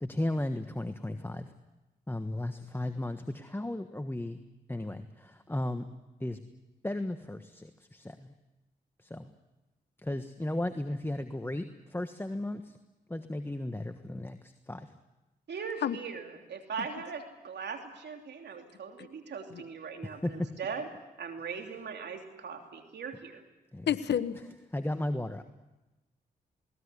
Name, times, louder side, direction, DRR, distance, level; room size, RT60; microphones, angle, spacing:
voice 1, 0.0-1.5 2.1-4.4 4.7-5.0 5.5-5.8 6.2-6.4 6.8-8.0 9.1-9.3 10.0-11.7 11.9-12.6 13.1-14.4 14.7-14.9 20.2-20.3 23.7-23.9 24.7-25.4, left 1 dB, 10° left, 8 dB, 1.4 m, -34 dB
voice 2, 15.5-20.9 21.2-23.4, right 6 dB, 70° right, 4 dB, 3.1 m, -40 dB
voice 3, 23.9-24.4, left 9 dB, 75° left, 12 dB, 1.1 m, -28 dB
20.5 x 19.0 x 10.0 m, 1.1 s
supercardioid pair, 50°, 18 cm